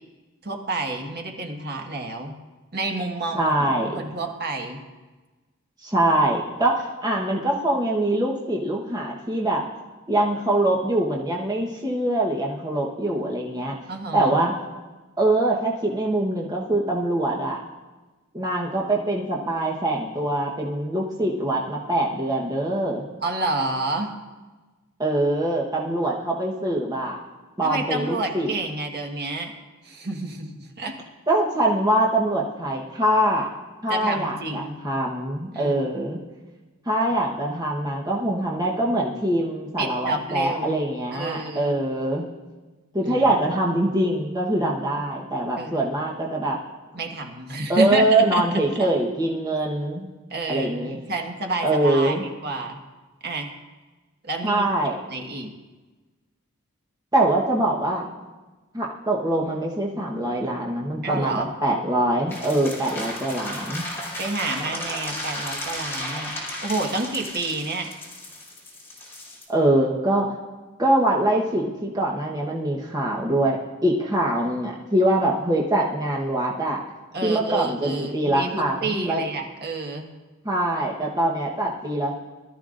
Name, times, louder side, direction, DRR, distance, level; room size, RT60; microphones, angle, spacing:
voice 1, 0.4-2.3 2.7-4.8 13.9-14.4 23.2-24.1 27.6-29.5 29.8-31.0 33.9-34.8 35.5-35.8 39.8-40.8 41.1-41.8 43.0-43.3 45.6-45.9 46.9-48.9 50.3-52.1 52.4-52.8 53.2-53.5 54.2-54.6 55.1-55.5 61.0-61.5 64.2-66.3 66.6-67.9 77.1-80.1, right 2 dB, 45° right, 2 dB, 1.4 m, -29 dB
voice 2, 3.3-4.0 5.8-9.6 10.1-13.7 14.1-14.5 15.2-17.6 18.3-23.1 25.0-27.2 27.6-28.5 31.3-33.5 33.8-36.2 36.9-42.3 42.9-46.6 47.7-50.1 50.5-51.0 51.6-52.2 54.4-55.0 57.1-58.0 58.7-63.8 69.5-70.3 70.8-76.8 77.2-79.2 80.4-82.1, right 1 dB, 15° right, -3 dB, 1.1 m, -23 dB
sound 1, 62.3-69.4, left 1 dB, 10° left, 3.2 m, -34 dB
20.5 x 13.0 x 2.5 m, 1.2 s
head